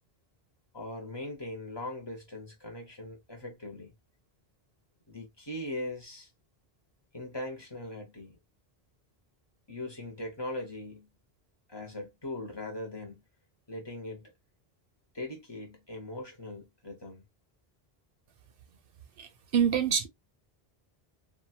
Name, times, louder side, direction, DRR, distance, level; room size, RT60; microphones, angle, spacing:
voice 1, 0.7-3.9 5.1-6.3 7.1-8.4 9.7-11.1 11.7-13.2 13.7-14.3 15.1-17.2, left 1 dB, 25° left, 0.8 m, -40 dB
voice 2, 19.2-20.1, right 8 dB, 65° right, 0.7 m, -26 dB
2.7 x 2.3 x 2.7 m
omnidirectional pair, 1.0 m